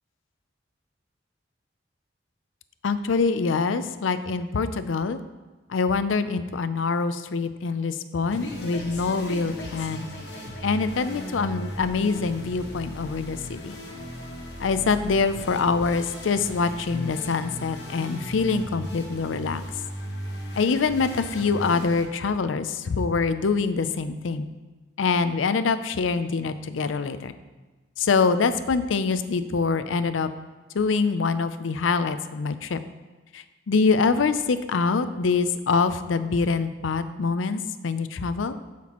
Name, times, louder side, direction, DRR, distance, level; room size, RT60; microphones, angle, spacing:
voice 1, 2.8-5.2 5.7-10.1 10.6-13.8 14.6-19.6 20.6-24.5 25.0-27.3 28.0-30.3 30.7-32.8 33.3-38.6, left 4 dB, 90° left, 11 dB, 0.5 m, -25 dB
sound 1, 8.3-22.0, equal, 60° left, 1.3 m, -37 dB
13.0 x 5.9 x 3.0 m, 1.2 s
head